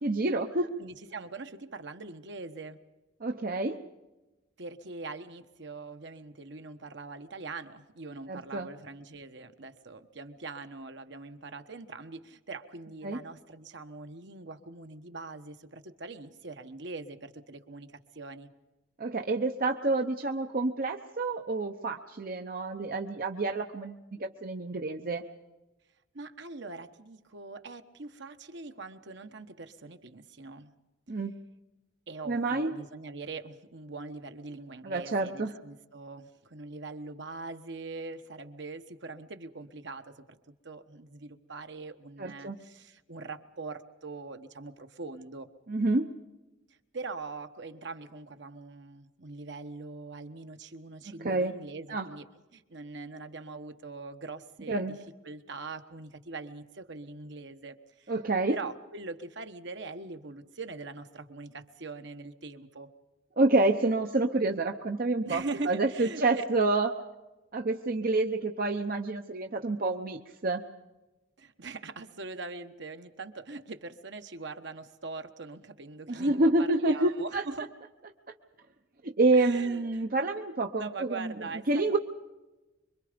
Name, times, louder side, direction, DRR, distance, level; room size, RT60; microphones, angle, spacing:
voice 1, 0.0-0.7 3.2-3.8 8.3-8.7 13.0-13.2 19.0-25.2 31.1-31.4 32.3-32.7 34.8-35.5 42.2-42.6 45.7-46.1 51.1-51.6 51.9-52.1 54.7-55.0 58.1-58.6 63.4-66.9 67.5-70.6 76.1-77.4 79.0-81.3 81.7-82.0, right 2 dB, 50° right, 4 dB, 1.0 m, -28 dB
voice 2, 0.8-2.8 4.6-18.5 26.1-30.7 32.1-40.4 40.6-45.5 46.9-52.2 52.5-54.9 55.2-58.1 58.5-62.9 65.2-66.4 71.4-77.7 79.3-80.0 80.8-82.0, right 3 dB, 65° right, 8 dB, 1.3 m, -42 dB
25.5 x 23.5 x 5.2 m, 1.1 s
head